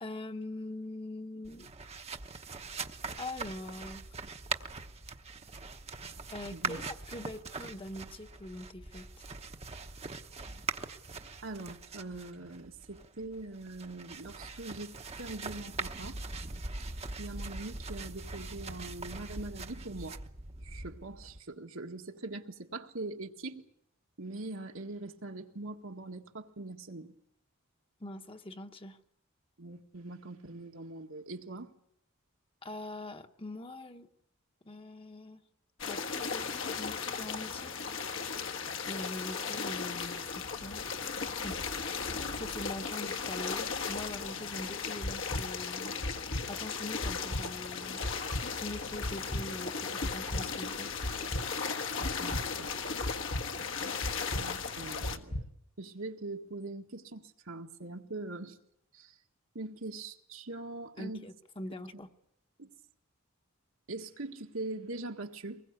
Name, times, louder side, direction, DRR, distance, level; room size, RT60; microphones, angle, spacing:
voice 1, 0.0-1.8 3.2-4.0 6.3-9.3 28.0-29.0 32.6-34.1 34.6-35.4 35.8-37.8 38.9-40.8 41.2-46.0 46.5-48.0 48.6-50.9 61.0-62.1, left 1 dB, 25° left, 1.1 m, -43 dB
sound 1, 1.4-21.4, right 4 dB, 30° right, 1.0 m, -42 dB
voice 2, 11.4-16.2 17.2-20.2 20.6-23.6 24.2-27.2 29.6-31.7 52.0-52.7 53.5-53.7 54.3-55.5 55.8-58.6 58.9-59.2 59.6-61.3 62.6-62.7 63.9-65.6, right 2 dB, 70° right, 1.8 m, -42 dB
sound 2, 35.8-55.2, left 5 dB, 65° left, 1.5 m, -36 dB
sound 3, 45.0-45.4 46.0-46.4 47.0-47.4 48.0-48.4 49.0-49.4 50.0-50.4 51.0-51.4 52.0-52.4 53.0-53.4 54.0-54.4 55.0-55.4, left 1 dB, 40° left, 1.4 m, -35 dB
24.0 x 20.5 x 8.2 m
head